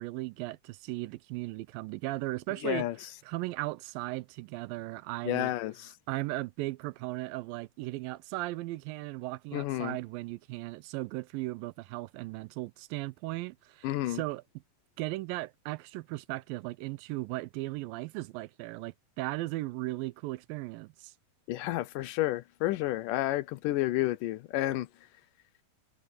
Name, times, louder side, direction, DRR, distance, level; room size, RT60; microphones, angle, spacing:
voice 1, 0.0-2.9 3.2-5.5 6.1-14.4 15.0-21.1, right 19 dB, 85° right, 2.3 m, -37 dB
voice 2, 2.6-3.0 5.2-5.9 9.5-10.0 13.8-14.2 21.5-24.9, left 16 dB, 75° left, 2.2 m, -30 dB
omnidirectional pair, 4.1 m